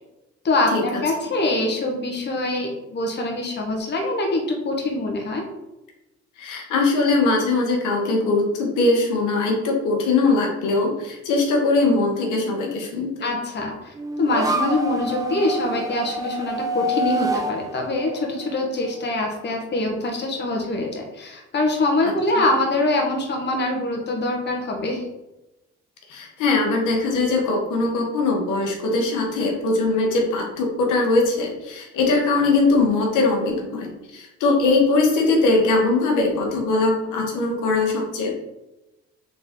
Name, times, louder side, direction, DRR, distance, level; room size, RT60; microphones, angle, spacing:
voice 1, 0.4-5.5 13.2-25.0, left 2 dB, 35° left, 1 dB, 1.0 m, -24 dB
voice 2, 6.4-13.1 22.0-22.1 26.1-38.3, left 3 dB, 80° left, 0 dB, 1.1 m, -21 dB
sound 1, 13.9-19.2, right 1 dB, 10° right, 0.5 m, -27 dB
3.9 x 3.6 x 3.6 m, 0.98 s
cardioid pair, 90°, 30 cm